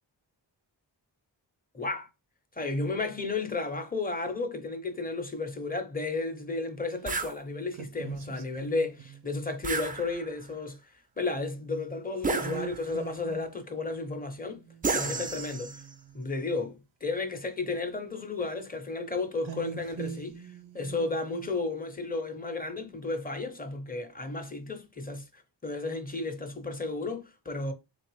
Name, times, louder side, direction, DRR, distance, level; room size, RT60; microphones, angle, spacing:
voice 1, 1.7-2.1 2.5-15.8 16.1-27.7, left 3 dB, 20° left, 0.7 m, -33 dB
sound 1, 7.1-7.4 9.6-10.5 12.2-13.0 14.8-15.9, right 4 dB, 20° right, 0.3 m, -32 dB
sound 2, 7.7-9.2 12.3-13.5 14.5-16.2 19.4-21.5, right 7 dB, 90° right, 0.6 m, -42 dB
3.8 x 3.3 x 3.0 m
wide cardioid pair, 85°, 45 cm